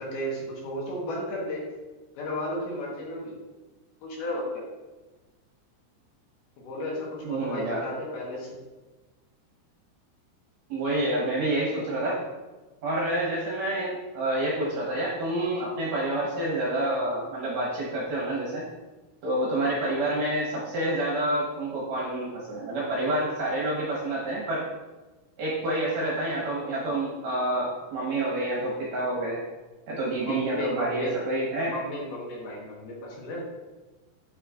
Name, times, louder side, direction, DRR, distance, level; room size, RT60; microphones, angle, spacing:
voice 1, 0.0-1.6 2.2-3.4 4.0-4.7 6.6-8.5 30.2-31.1 31.6-33.4, left 1 dB, 70° left, -3 dB, 3.0 m, -34 dB
voice 2, 7.2-7.8 10.7-12.2 12.8-18.6 19.2-24.6 25.4-29.4 29.9-31.7, right 1 dB, 65° right, -5 dB, 2.2 m, -28 dB
8.0 x 6.4 x 2.5 m, 1.2 s
omnidirectional pair, 5.0 m